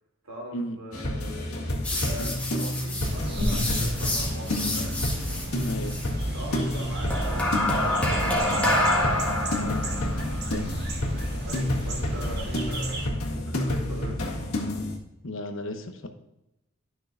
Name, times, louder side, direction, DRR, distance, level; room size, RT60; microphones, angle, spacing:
voice 1, 0.2-5.0 6.3-9.1 11.4-13.0 13.3-14.3, right 1 dB, 80° right, -2 dB, 3.2 m, -41 dB
sound 1, 0.9-15.0, left 1 dB, 85° left, 1.8 m, -30 dB
sound 2, 1.8-6.1 7.1-12.5, left 1 dB, 5° left, 1.6 m, -29 dB
sound 3, 3.0-13.1, right 1 dB, 50° right, 1.7 m, -33 dB
voice 2, 5.6-6.0 9.6-10.7 15.2-16.1, left 1 dB, 60° left, 6 dB, 1.0 m, -35 dB
12.0 x 6.3 x 2.6 m, 0.89 s
head